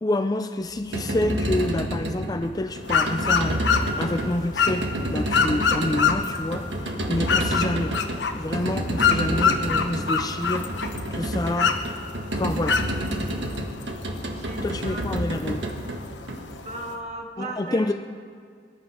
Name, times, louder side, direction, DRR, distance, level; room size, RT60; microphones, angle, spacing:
voice 1, 0.0-8.0 8.3-11.8 12.3-12.8 14.6-15.6 17.4-17.9, left 1 dB, 20° left, 8 dB, 0.4 m, -28 dB
sound 1, 0.7-16.9, right 1 dB, 75° right, 1.6 m, -29 dB
sound 2, 2.8-16.9, left 6 dB, 70° left, 1.0 m, -27 dB
voice 2, 14.1-15.6 16.6-17.9, right 1 dB, 35° right, 1 dB, 2.0 m, -38 dB
24.0 x 11.5 x 4.9 m, 2.1 s
head